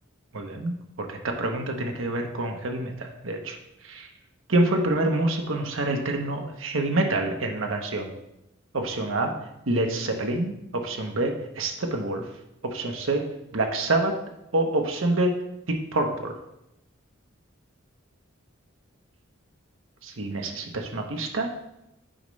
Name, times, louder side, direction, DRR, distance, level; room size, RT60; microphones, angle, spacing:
voice 1, 0.3-3.5 3.9-4.0 4.5-8.1 8.7-9.3 9.7-10.6 10.8-12.2 12.7-13.2 13.5-14.1 14.5-15.3 15.7-16.3 20.2-21.5, right 2 dB, 70° right, 3 dB, 0.9 m, -26 dB
8.8 x 5.1 x 3.2 m, 0.86 s
head